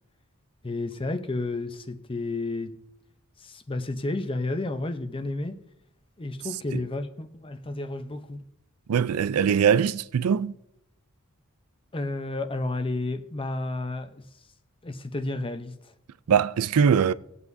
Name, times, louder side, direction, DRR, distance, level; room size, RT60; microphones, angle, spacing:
voice 1, 0.6-2.8 3.4-5.6 6.2-8.4 11.9-14.5 14.8-15.9, left 2 dB, 25° left, 0.7 m, -31 dB
voice 2, 8.9-10.5 16.3-17.1, right 7 dB, 85° right, 0.4 m, -22 dB
19.5 x 8.3 x 2.7 m
head